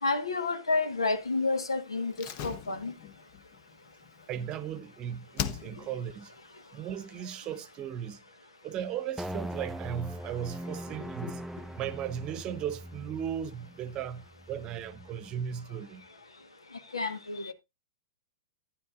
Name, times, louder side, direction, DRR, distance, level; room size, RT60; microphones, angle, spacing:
voice 1, 0.0-2.9 11.0-11.3 16.9-17.5, left 3 dB, 85° left, 1.3 m, -30 dB
Slam, 2.1-4.9 5.3-6.1 6.4-6.5, left 9 dB, 45° left, 0.9 m, -39 dB
voice 2, 4.3-6.3 6.7-8.2 8.6-11.4 11.8-16.0, right 9 dB, 35° right, 0.9 m, -36 dB
sound 1, 9.2-15.7, equal, ahead, 0.4 m, -42 dB
12.0 x 9.8 x 2.4 m
hypercardioid pair, 110°, 3 cm